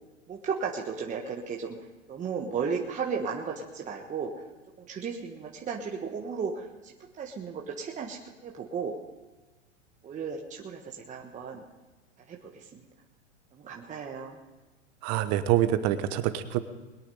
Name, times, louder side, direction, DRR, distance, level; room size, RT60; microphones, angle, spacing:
voice 1, 0.3-1.8 2.1-4.3 4.8-8.9 10.0-11.6 12.3-12.8 13.5-14.4, right 6 dB, 20° right, 0 dB, 1.3 m, -35 dB
voice 2, 15.0-16.6, right 12 dB, 40° right, 11 dB, 1.2 m, -26 dB
21.5 x 8.6 x 5.5 m, 1.2 s
hypercardioid pair, 125°, 38 cm